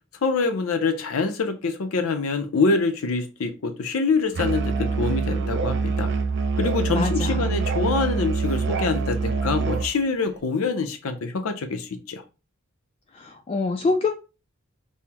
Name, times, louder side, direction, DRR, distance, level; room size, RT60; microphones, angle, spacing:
voice 1, 0.2-6.1 6.6-12.2, left 4 dB, 80° left, 8 dB, 0.6 m, -25 dB
Musical instrument, 4.3-9.9, right 4 dB, 60° right, 0.4 m, -25 dB
voice 2, 6.9-7.6 13.1-14.1, left 3 dB, 30° left, 4 dB, 0.3 m, -26 dB
5.4 x 2.0 x 2.9 m, 0.29 s
head